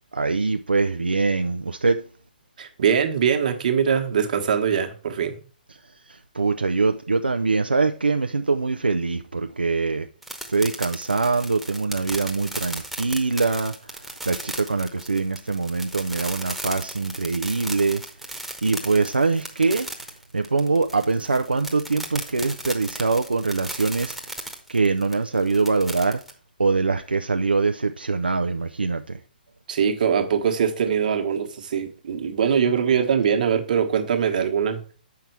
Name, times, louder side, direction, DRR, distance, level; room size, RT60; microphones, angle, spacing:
voice 1, 0.1-2.0 6.4-10.1 10.5-13.7 14.3-18.0 18.6-19.9 20.3-24.1 24.7-26.2 26.6-29.2, right 4 dB, 85° right, 0.5 m, -23 dB
voice 2, 2.6-5.4 29.7-34.8, right 7 dB, 55° right, 1.3 m, -22 dB
sound 1, 10.2-26.3, right 1 dB, ahead, 1.1 m, -36 dB
7.8 x 5.8 x 4.6 m
figure-of-eight pair, 125°, 5 cm